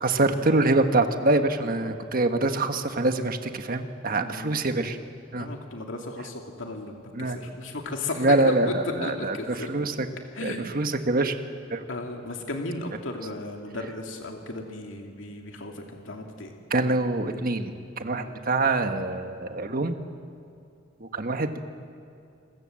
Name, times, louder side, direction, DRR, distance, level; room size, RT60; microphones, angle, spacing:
voice 1, 0.0-5.0 5.3-5.5 7.1-7.4 8.2-10.1 10.4-11.3 11.7-11.8 16.7-19.9 21.0-21.6, right 2 dB, 50° right, 7 dB, 1.4 m, -25 dB
voice 2, 4.2-4.5 5.4-9.7 10.4-10.9 11.9-16.5 18.1-18.4, left 2 dB, 85° left, 2 dB, 2.3 m, -35 dB
28.5 x 21.0 x 7.6 m, 2.5 s
head